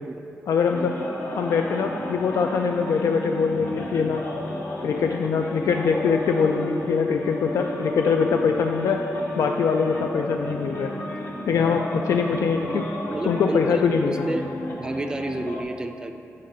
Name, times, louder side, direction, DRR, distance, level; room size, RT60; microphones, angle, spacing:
voice 1, 0.5-0.9 1.3-4.2 4.8-9.0 9.4-10.9 11.5-12.8 13.3-14.3, left 5 dB, 80° left, 4 dB, 0.3 m, -23 dB
sound 1, 0.7-15.6, left 1 dB, 50° left, 0.8 m, -33 dB
voice 2, 12.7-14.4 14.8-16.1, right 2 dB, 15° right, 6 dB, 0.3 m, -31 dB
7.8 x 3.6 x 5.6 m, 2.8 s
wide cardioid pair, 170°, 5 cm